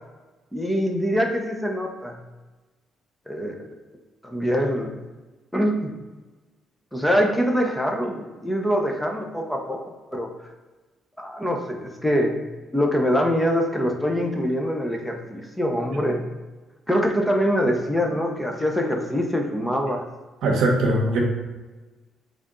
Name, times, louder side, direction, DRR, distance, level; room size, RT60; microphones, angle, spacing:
voice 1, 0.5-2.2 3.3-3.7 4.2-4.9 5.5-6.0 6.9-9.8 10.1-10.3 11.2-12.4 12.7-16.3 16.9-20.0, equal, 5° left, 2 dB, 0.8 m, -24 dB
voice 2, 20.4-21.2, right 2 dB, 75° right, 0 dB, 0.9 m, -20 dB
3.5 x 2.6 x 3.7 m, 1.2 s
supercardioid pair, 55°, 0 cm